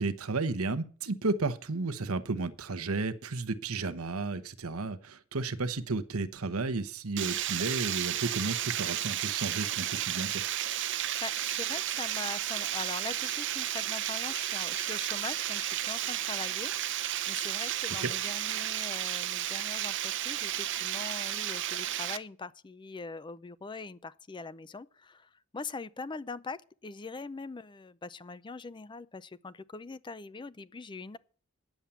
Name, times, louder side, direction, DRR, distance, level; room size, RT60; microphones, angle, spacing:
voice 1, 0.0-10.4 18.0-18.1, right 3 dB, 80° right, 1.0 m, -33 dB
Water, 7.2-22.2, right 12 dB, 55° right, 0.7 m, -33 dB
voice 2, 10.7-16.7 17.3-31.2, left 4 dB, 20° left, 0.4 m, -42 dB
10.0 x 7.4 x 6.9 m
head